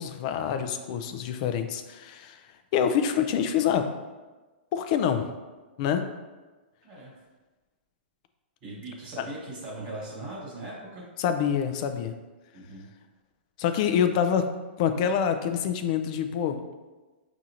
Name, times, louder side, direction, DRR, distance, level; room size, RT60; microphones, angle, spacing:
voice 1, 0.0-2.4 2.7-3.9 4.7-5.3 5.8-6.0 11.2-12.1 13.6-14.5 14.8-16.6, left 8 dB, 40° left, 7 dB, 0.4 m, -26 dB
voice 2, 6.8-7.2 8.6-11.1 12.5-12.9, right 2 dB, 30° right, -5 dB, 1.3 m, -39 dB
6.0 x 2.6 x 2.8 m, 1.2 s
hypercardioid pair, 150°, 6 cm